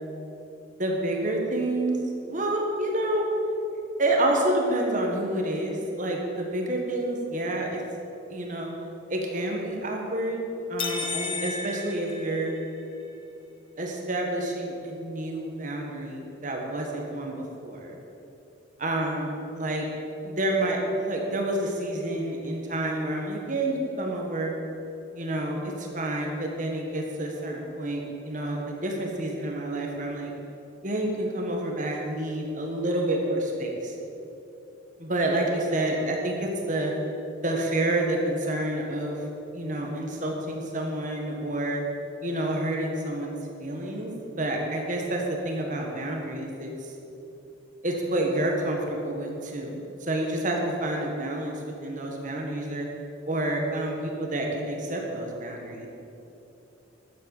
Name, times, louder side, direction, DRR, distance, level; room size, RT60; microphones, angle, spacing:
voice 1, 0.8-2.0 2.3-3.2 4.0-7.8 8.3-8.7 9.1-10.4 10.7-12.5 13.8-18.0 18.8-19.9 20.2-24.5 25.1-30.3 30.8-33.9 35.0-36.9 37.4-39.3 39.5-41.8 42.2-43.3 43.6-44.1 44.4-46.9 47.8-52.9 53.2-55.9, right 1 dB, 40° right, 0 dB, 1.6 m, -29 dB
sound 1, 10.8-12.9, left 4 dB, 25° left, 0.9 m, -33 dB
12.0 x 7.6 x 7.2 m, 3.0 s
head